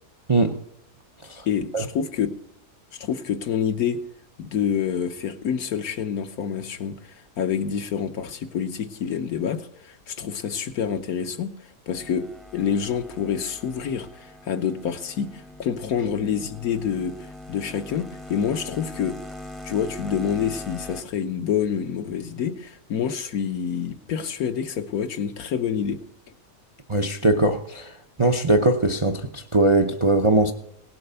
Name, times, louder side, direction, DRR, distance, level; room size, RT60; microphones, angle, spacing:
voice 1, 1.5-2.3 3.0-4.0 4.4-7.0 7.4-11.5 11.9-17.2 17.5-19.2 19.6-26.0, left 7 dB, 65° left, 1.4 m, -27 dB
sound 1, 11.9-21.0, left 1 dB, ahead, 0.8 m, -41 dB
voice 2, 26.9-27.9 28.2-30.5, right 2 dB, 30° right, 0.5 m, -20 dB
18.0 x 7.8 x 6.8 m
omnidirectional pair, 1.7 m